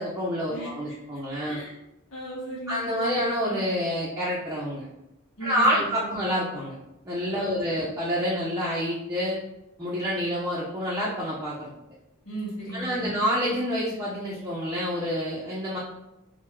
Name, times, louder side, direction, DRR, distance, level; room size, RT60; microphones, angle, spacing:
voice 1, 0.0-1.6 2.7-4.9 5.4-6.8 7.0-9.4 9.8-11.7 12.7-15.8, equal, 15° right, -6 dB, 0.6 m, -28 dB
voice 2, 2.1-3.2 5.4-6.0 7.4-7.6 12.2-13.2, right 1 dB, 85° left, -7 dB, 1.3 m, -36 dB
3.4 x 2.7 x 3.0 m, 0.89 s
head